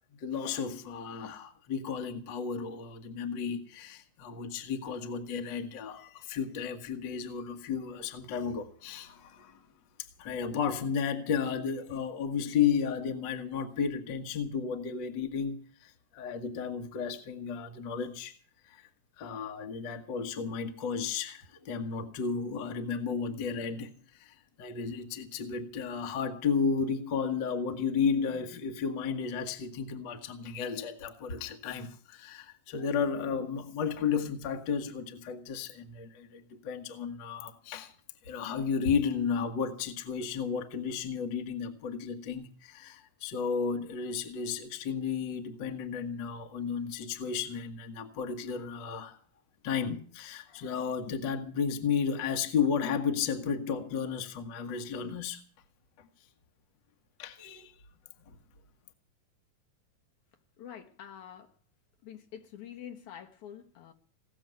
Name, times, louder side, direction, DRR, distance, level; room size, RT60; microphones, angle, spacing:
voice 1, 0.1-9.6 10.2-18.4 18.7-18.8 19.2-37.9 38.2-49.2 49.6-55.4 56.0-56.1 57.2-57.7 58.3-58.4, left 6 dB, 45° left, 1.7 m, -33 dB
voice 2, 60.6-61.5 62.0-63.9, left 9 dB, 70° left, 2.5 m, -46 dB
18.0 x 7.1 x 9.3 m
omnidirectional pair, 3.8 m